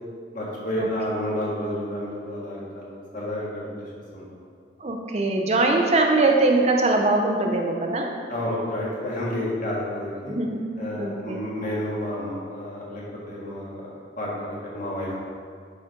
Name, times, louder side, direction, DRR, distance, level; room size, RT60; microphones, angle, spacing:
voice 1, 0.3-3.8 4.1-4.3 8.3-10.3 10.8-13.8 14.1-15.2, left 1 dB, 45° left, -5 dB, 1.7 m, -30 dB
voice 2, 4.8-8.1 10.3-11.5, right 2 dB, 35° right, 2 dB, 0.6 m, -22 dB
10.0 x 4.2 x 3.7 m, 2.1 s
head